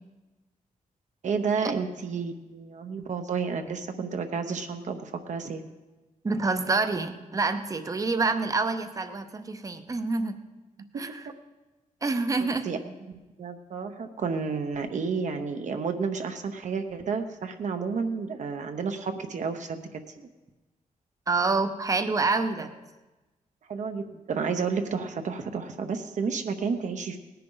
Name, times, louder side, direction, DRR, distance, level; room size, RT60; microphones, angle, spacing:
voice 1, 1.2-5.6 12.4-19.8 20.2-20.3 22.6-22.7 23.7-27.2, right 5 dB, 60° right, 6 dB, 0.8 m, -31 dB
voice 2, 6.2-10.4 11.0-11.2 12.0-12.7 21.3-22.7, right 3 dB, 25° right, 9 dB, 0.7 m, -27 dB
18.5 x 10.0 x 3.9 m, 1.2 s
wide cardioid pair, 165°, 14 cm